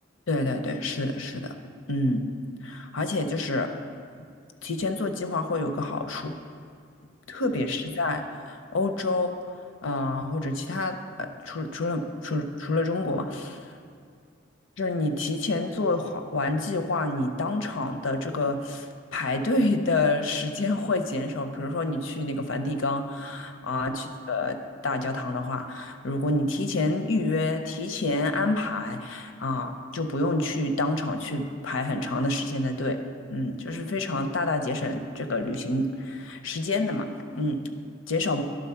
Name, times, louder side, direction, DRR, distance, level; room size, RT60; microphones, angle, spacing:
voice 1, 0.3-1.6 1.9-2.2 2.6-3.7 4.6-6.4 7.3-9.5 9.8-13.6 14.8-24.6 24.8-33.0 33.3-37.6 38.1-38.4, left 2 dB, 70° left, 7 dB, 0.6 m, -28 dB
11.5 x 4.0 x 5.7 m, 2.2 s
head